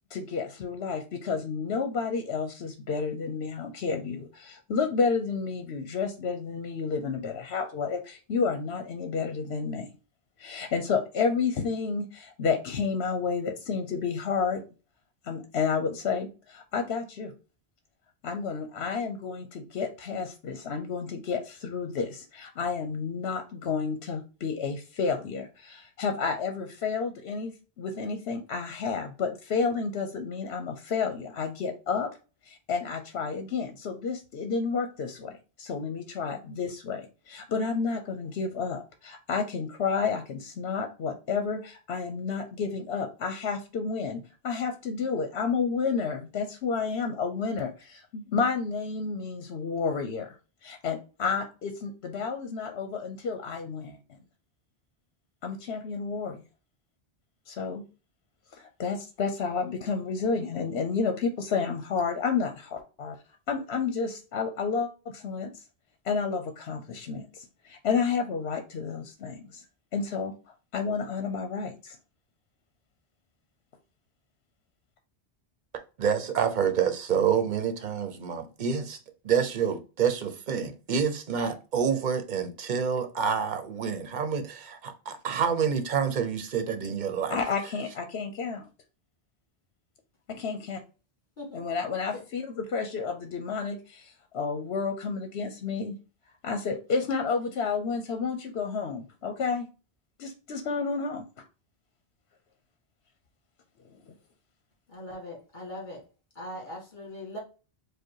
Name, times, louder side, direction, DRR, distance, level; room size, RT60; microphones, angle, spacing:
voice 1, 0.1-9.9 10.4-14.6 15.2-17.3 18.2-32.1 32.4-35.3 35.6-50.4 50.6-54.0 55.4-56.4 57.5-57.8 58.5-63.1 63.5-65.6 66.0-69.6 69.9-70.3 70.7-72.0 87.3-88.7 90.3-90.8 91.5-96.0 96.4-99.7 100.2-101.2 104.0-104.1, left 5 dB, 80° left, 1.0 m, -31 dB
voice 2, 76.0-79.0 79.2-87.4, right 7 dB, 50° right, 0.9 m, -28 dB
voice 3, 104.9-106.0 106.4-107.4, left 1 dB, 50° left, 2.2 m, -40 dB
5.0 x 2.3 x 4.5 m
omnidirectional pair, 1.1 m